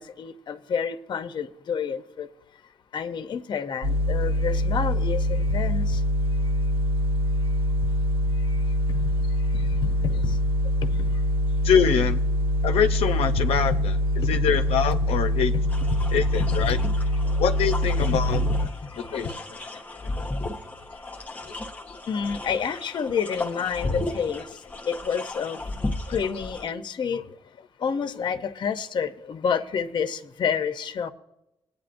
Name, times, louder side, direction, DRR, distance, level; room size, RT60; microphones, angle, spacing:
voice 1, 0.0-2.3 2.9-6.0 8.5-8.6 8.9-9.1 9.5-10.4 10.8-11.2 11.8-12.1 13.7-13.8 14.2-14.4 15.5-15.6 16.4-16.6 18.0-18.2 18.5-18.6 22.1-24.5 24.9-25.6 26.1-27.2 27.8-31.1, left 6 dB, 50° left, 9 dB, 0.7 m, -29 dB
sound 1, 3.8-18.7, equal, 65° right, 1.0 m, -24 dB
voice 2, 11.6-12.2 12.6-14.0 14.3-15.5 16.1-16.8 17.4-18.4 19.0-19.3 23.9-24.0, left 7 dB, 85° left, 7 dB, 0.6 m, -24 dB
sound 2, 15.7-26.6, left 2 dB, 15° left, 0.8 m, -34 dB
21.0 x 9.1 x 2.6 m, 0.88 s
cardioid pair, 130°, 10 cm